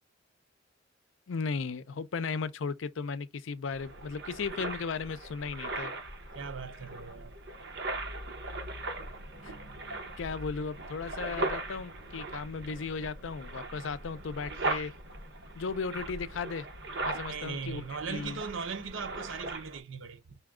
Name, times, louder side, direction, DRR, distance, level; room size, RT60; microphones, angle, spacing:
voice 1, 1.3-5.9 9.4-9.5 10.2-14.9 15.5-16.7 17.0-18.4, left 5 dB, 85° left, 0.5 m, -36 dB
sound 1, 3.7-19.8, right 2 dB, 65° right, 1.1 m, -39 dB
voice 2, 6.3-7.4 17.3-20.4, right 5 dB, 85° right, 0.7 m, -39 dB
5.5 x 2.3 x 3.6 m
head